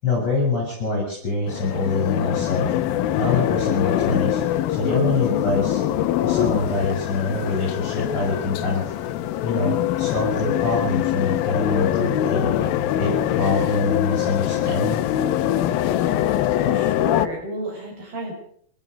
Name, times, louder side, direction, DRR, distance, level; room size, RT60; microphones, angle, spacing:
voice 1, 0.0-2.7 3.2-4.4 4.7-5.8 6.2-8.9 9.4-12.5 13.0-15.0, left 3 dB, 20° left, -3 dB, 8.5 m, -25 dB
sound 1, 1.5-17.3, left 11 dB, 85° left, 2.1 m, -23 dB
voice 2, 16.5-18.3, equal, 50° right, 1 dB, 9.4 m, -32 dB
29.5 x 13.0 x 7.0 m, 0.62 s
omnidirectional pair, 5.7 m